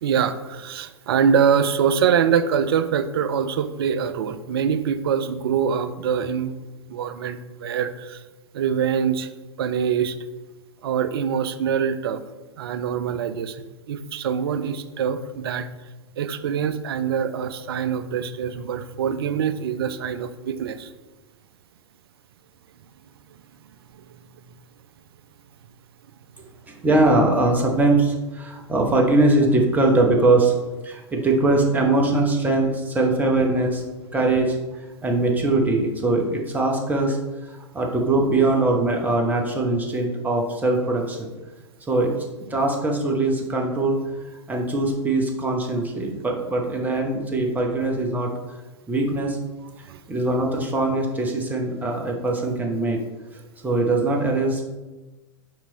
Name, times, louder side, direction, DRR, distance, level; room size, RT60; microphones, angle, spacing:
voice 1, 0.0-6.6 6.9-8.2 8.5-9.3 9.6-10.2 10.8-12.2 12.6-15.7 16.2-20.9 23.3-23.4 23.9-24.2 24.5-24.6 49.8-50.0, right 7 dB, 50° right, 12 dB, 0.4 m, -24 dB
voice 2, 26.7-30.5 30.8-33.8 34.1-37.2 37.4-41.3 41.9-42.1 42.5-44.0 44.5-48.3 48.9-49.4 50.1-53.0 53.3-54.6, right 2 dB, 10° right, 1 dB, 0.9 m, -21 dB
5.7 x 4.6 x 3.9 m, 1.1 s
figure-of-eight pair, 100°, 16 cm